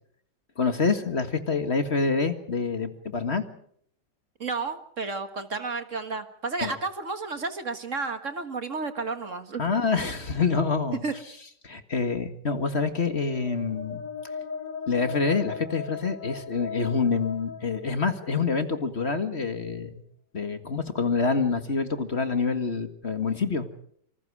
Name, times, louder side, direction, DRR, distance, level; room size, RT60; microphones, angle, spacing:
voice 1, 0.6-3.4 6.6-6.7 9.6-11.0 11.6-14.0 14.9-20.0 20.3-23.7, left 4 dB, 40° left, 8 dB, 2.0 m, -26 dB
voice 2, 4.4-9.6 11.0-11.1, right 4 dB, 50° right, 8 dB, 1.9 m, -32 dB
sound 1, 13.1-18.8, left 7 dB, 85° left, 3.0 m, -38 dB
27.5 x 25.5 x 4.9 m, 0.66 s
omnidirectional pair, 1.8 m